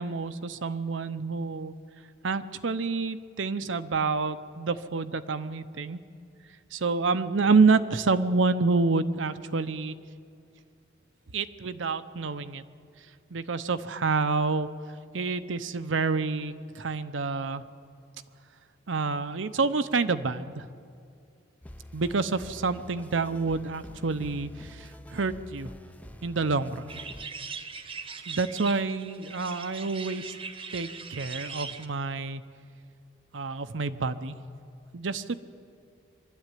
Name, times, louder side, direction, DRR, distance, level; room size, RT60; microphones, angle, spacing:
voice 1, 0.0-1.7 2.2-6.0 6.7-10.0 11.3-12.6 13.3-14.7 15.1-17.6 18.9-20.7 21.9-25.7 26.2-27.0 28.3-30.3 30.7-32.4 33.3-34.4 34.9-35.3, right 4 dB, 80° right, 11 dB, 0.8 m, -28 dB
sound 1, 21.6-27.3, left 1 dB, 10° left, 0.4 m, -47 dB
sound 2, 26.9-31.9, right 5 dB, 30° right, 0.9 m, -40 dB
23.0 x 12.5 x 9.1 m, 2.4 s
head